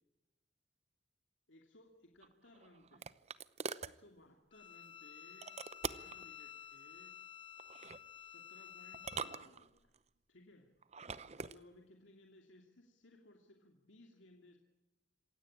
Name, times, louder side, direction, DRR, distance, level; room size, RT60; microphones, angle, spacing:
voice 1, 1.5-3.0 3.8-5.5 5.8-7.1 8.2-10.0 10.3-10.7 11.3-14.6, left 1 dB, 85° left, 3 dB, 2.6 m, -62 dB
sound 1, 2.2-4.0 5.4-6.2 7.6-8.0 8.9-10.0 10.8-11.6, right 5 dB, 35° right, 0.8 m, -44 dB
Bowed string instrument, 4.5-9.4, left 10 dB, 25° left, 1.3 m, -53 dB
27.0 x 16.5 x 8.6 m, 0.99 s
head